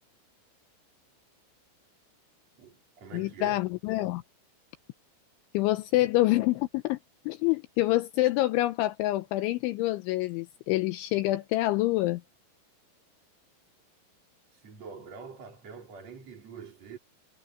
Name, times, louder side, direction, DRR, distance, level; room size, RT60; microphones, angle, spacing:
voice 1, 2.6-3.6 6.0-6.1 14.6-17.0, right 5 dB, 35° right, 5.5 m, -45 dB
voice 2, 3.1-4.2 5.5-7.0 7.3-12.2, left 17 dB, 80° left, 3.0 m, -26 dB
omnidirectional pair, 5.7 m